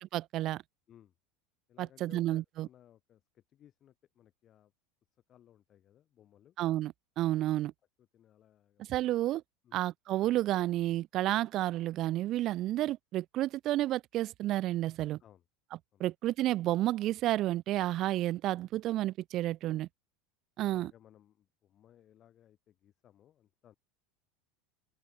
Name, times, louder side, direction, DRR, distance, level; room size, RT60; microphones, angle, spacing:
voice 1, 0.1-0.6 1.8-2.4 6.6-7.7 8.9-9.4 9.7-15.2 16.0-19.9 20.6-20.9, right 15 dB, 40° right, 0.4 m, -31 dB
voice 2, 1.7-4.7 5.3-6.6 7.6-7.7 8.0-9.0 9.6-9.9 15.2-15.5 15.9-16.1 19.6-19.9 20.6-23.7, left 11 dB, 35° left, 6.9 m, -61 dB
open air
figure-of-eight pair, 75°, 0 cm